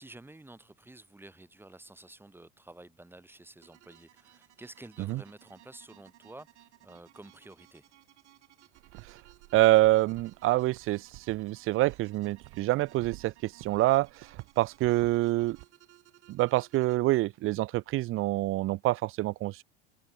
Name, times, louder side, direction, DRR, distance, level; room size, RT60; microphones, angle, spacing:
voice 1, 0.0-7.9, right 2 dB, 5° right, 3.3 m, -51 dB
sound 1, 3.6-16.9, right 15 dB, 85° right, 6.8 m, -60 dB
sound 2, 8.7-15.7, right 25 dB, 55° right, 2.4 m, -51 dB
voice 2, 9.5-14.3 14.6-15.6 16.3-19.6, right 18 dB, 40° right, 0.6 m, -26 dB
supercardioid pair, 110°, 34 cm